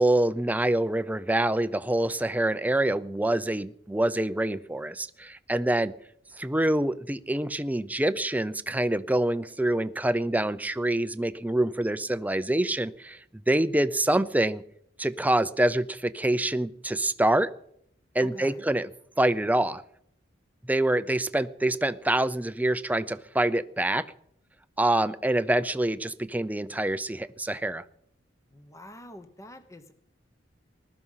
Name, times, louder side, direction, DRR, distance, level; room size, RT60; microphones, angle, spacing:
voice 1, 0.0-5.9 6.4-13.2 13.5-14.6 15.0-17.5 18.1-18.9 19.2-19.8 20.6-24.1 24.8-27.8, right 1 dB, 10° right, 13 dB, 0.6 m, -26 dB
voice 2, 18.2-18.7 28.5-29.9, left 1 dB, 15° left, 9 dB, 1.1 m, -46 dB
19.5 x 12.5 x 5.7 m, 0.70 s
head